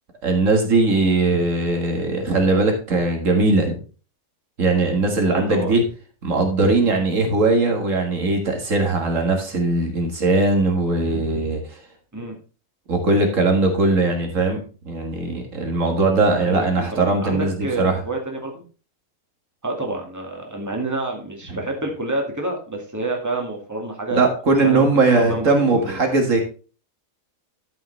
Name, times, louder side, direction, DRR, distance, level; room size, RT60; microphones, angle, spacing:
voice 1, 0.2-3.8 4.6-5.8 6.2-11.8 12.9-18.0 24.1-26.4, right 3 dB, 65° right, 3 dB, 2.1 m, -20 dB
voice 2, 5.2-5.7 12.1-12.4 16.4-18.6 19.6-24.3 24.6-24.9 25.1-26.0, right 2 dB, 10° right, 1 dB, 2.2 m, -28 dB
12.0 x 7.1 x 3.3 m, 0.36 s
omnidirectional pair, 1.4 m